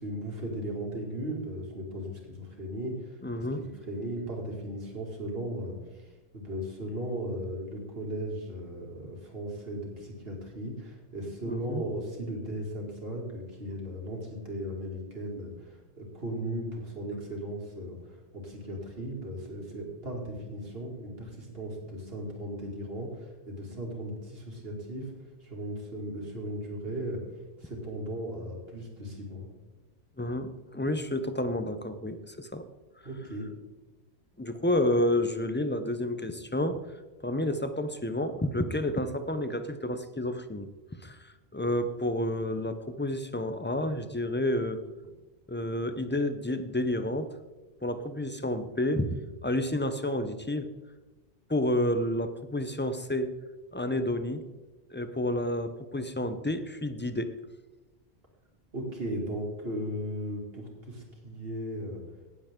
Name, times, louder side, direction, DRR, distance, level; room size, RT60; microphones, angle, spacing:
voice 1, 0.0-3.2 3.6-6.0 6.3-18.0 18.3-25.1 25.4-27.2 27.6-29.5 33.0-33.5 58.7-62.0, right 1 dB, 60° right, 0 dB, 2.6 m, -37 dB
voice 2, 3.2-3.6 11.5-11.8 30.2-32.7 34.4-36.8 37.2-40.7 41.0-44.8 45.5-47.3 47.8-50.7 51.5-53.3 53.7-54.4 54.9-57.3, left 1 dB, 15° left, 10 dB, 0.5 m, -30 dB
17.5 x 7.7 x 3.7 m, 1.2 s
omnidirectional pair, 1.1 m